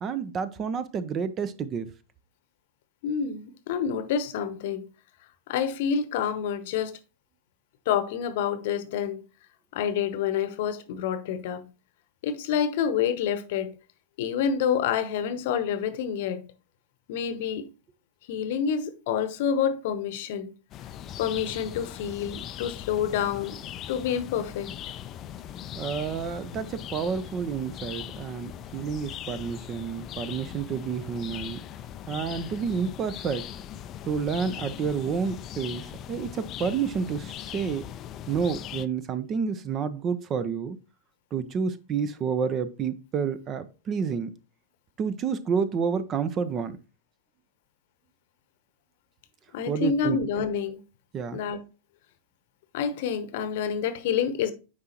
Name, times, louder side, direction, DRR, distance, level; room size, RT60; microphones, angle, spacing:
voice 1, 0.0-1.9 25.7-31.6 32.1-33.5 34.0-37.8 38.3-40.8 41.3-44.3 45.0-46.8 49.7-50.2 51.1-51.4, right 6 dB, 30° right, 0.6 m, -29 dB
voice 2, 3.0-4.8 5.5-7.0 7.9-9.2 9.7-11.6 12.2-13.7 14.2-16.4 17.1-17.7 18.3-20.5 21.2-23.6 23.9-24.7 49.5-50.8 51.3-51.6 52.7-54.5, left 8 dB, 50° left, 0.9 m, -28 dB
sound 1, 20.7-38.9, left 10 dB, 30° left, 0.4 m, -40 dB
9.5 x 4.6 x 2.9 m
figure-of-eight pair, 90°, 0 cm